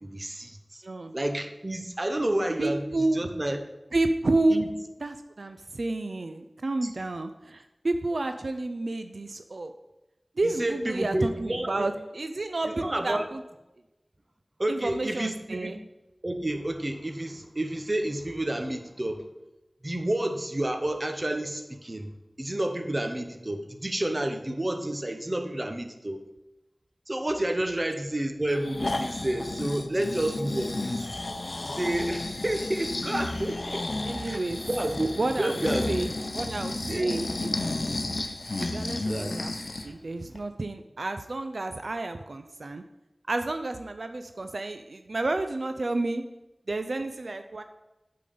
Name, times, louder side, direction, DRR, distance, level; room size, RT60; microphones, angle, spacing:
voice 1, 0.0-0.8 1.1-3.6 4.5-4.7 6.8-6.9 10.4-11.9 12.6-13.3 14.6-15.8 16.2-19.3 19.8-22.1 22.4-26.2 27.1-31.1 31.6-33.8 34.3-35.9 36.9-37.2 39.1-39.4, right 1 dB, 35° right, 6 dB, 0.9 m, -30 dB
voice 2, 0.8-1.1 2.6-3.2 3.9-4.7 5.0-9.7 10.4-13.4 14.7-15.8 27.7-27.8 34.0-34.6 35.2-35.5 35.9-37.3 38.6-39.5 39.8-42.8 43.3-46.2 46.7-47.6, right 2 dB, 85° right, 8 dB, 0.4 m, -30 dB
Breathing, 28.5-39.9 40.4-40.5, left 2 dB, 75° left, 0.7 m, -32 dB
8.4 x 3.8 x 6.8 m, 0.98 s
wide cardioid pair, 55°, 0 cm